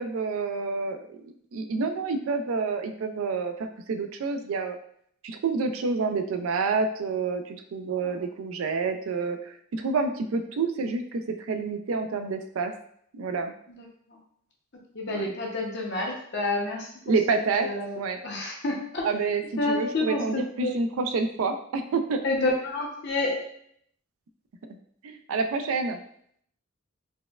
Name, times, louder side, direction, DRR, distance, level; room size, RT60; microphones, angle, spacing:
voice 1, 0.0-4.8 5.2-12.7 13.1-13.5 15.1-15.3 17.1-17.7 18.0-18.2 19.0-22.2 24.7-24.8 25.0-26.0, right 4 dB, 80° right, 7 dB, 0.4 m, -28 dB
voice 2, 13.7-14.2 14.9-16.9 17.6-19.1 19.6-20.8 22.2-23.4, left 2 dB, 55° left, -1 dB, 0.7 m, -29 dB
4.1 x 2.1 x 2.3 m, 0.65 s
head